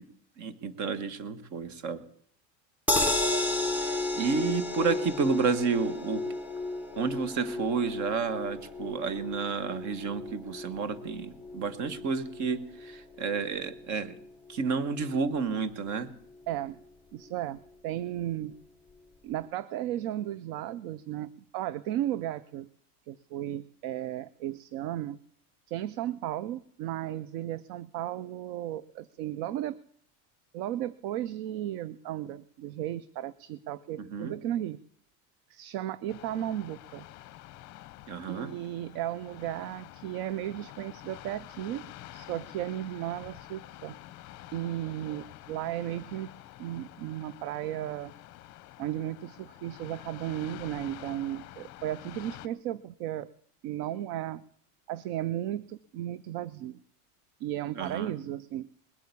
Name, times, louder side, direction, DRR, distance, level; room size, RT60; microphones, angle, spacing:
voice 1, 0.4-2.0 3.8-6.3 7.0-14.1 14.5-16.1 34.0-34.4 38.1-38.5 57.7-58.1, right 5 dB, 45° right, 14 dB, 1.3 m, -31 dB
sound 1, 2.9-15.1 15.5-15.6 15.9-16.0, left 2 dB, 5° right, 0.9 m, -33 dB
voice 2, 16.5-16.8 17.1-18.6 19.2-22.7 23.1-25.2 25.7-29.8 30.5-34.8 35.5-37.0 38.3-41.9 42.1-44.0 44.5-46.3 46.6-48.1 48.8-53.3 53.6-54.4 54.9-56.8 57.4-58.7, right 12 dB, 60° right, 20 dB, 0.6 m, -35 dB
sound 2, 36.1-52.5, left 15 dB, 45° left, 0.8 m, -48 dB
20.0 x 8.5 x 8.3 m, 0.64 s
cardioid pair, 150°, 41 cm